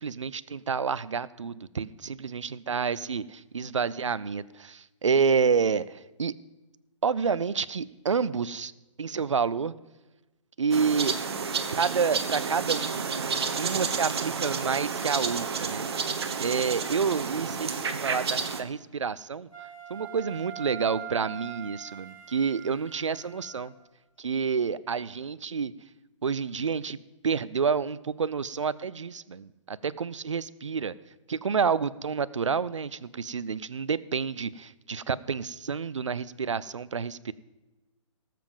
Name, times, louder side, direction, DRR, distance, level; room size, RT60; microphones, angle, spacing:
voice 1, 0.0-6.3 7.0-8.7 9.0-9.7 10.6-11.2 11.7-13.1 13.6-15.9 16.4-19.5 19.9-23.7 24.2-25.7 26.2-27.0 27.2-30.9 31.3-37.3, right 6 dB, 65° right, 18 dB, 0.5 m, -29 dB
sound 1, 10.7-18.6, right 5 dB, 50° right, 1.2 m, -30 dB
Wind instrument woodwind instrument, 19.5-23.8, right 10 dB, 90° left, 3.3 m, -43 dB
18.0 x 7.6 x 5.3 m, 1.1 s
figure-of-eight pair, 130°, 17 cm